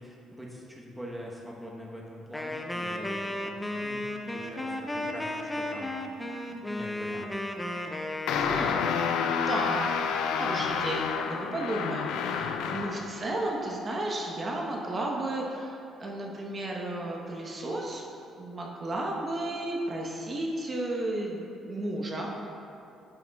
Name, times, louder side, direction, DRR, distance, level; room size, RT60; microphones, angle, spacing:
voice 1, 0.0-5.9 6.5-7.4, equal, 5° right, -3 dB, 1.1 m, -43 dB
Wind instrument woodwind instrument, 2.3-9.0, left 1 dB, 15° left, 0.6 m, -34 dB
sound 1, 8.3-13.1, left 6 dB, 80° left, 0.4 m, -29 dB
voice 2, 8.4-8.9 9.5-10.0 10.4-18.0 18.4-22.3, right 1 dB, 40° right, -1 dB, 1.1 m, -33 dB
9.7 x 6.9 x 2.4 m, 2.7 s
supercardioid pair, 70°, 0 cm